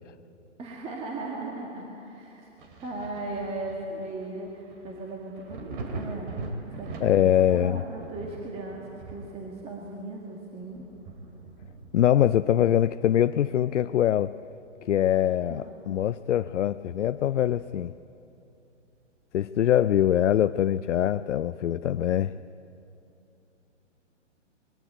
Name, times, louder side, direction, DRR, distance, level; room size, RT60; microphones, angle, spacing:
voice 1, 0.6-2.5 2.8-6.3 6.7-10.8 15.5-15.8, right 2 dB, 15° right, -1 dB, 1.9 m, -37 dB
Thunder, 2.6-13.9 14.3-15.8 16.2-16.3 16.9-18.1 19.6-19.7, right 3 dB, 40° right, 2.9 m, -43 dB
voice 2, 7.0-7.8 11.9-14.3 14.8-17.9 19.3-22.3, left 11 dB, 75° left, 12 dB, 0.6 m, -23 dB
21.5 x 16.5 x 9.0 m, 2.8 s
hypercardioid pair, 140°, 37 cm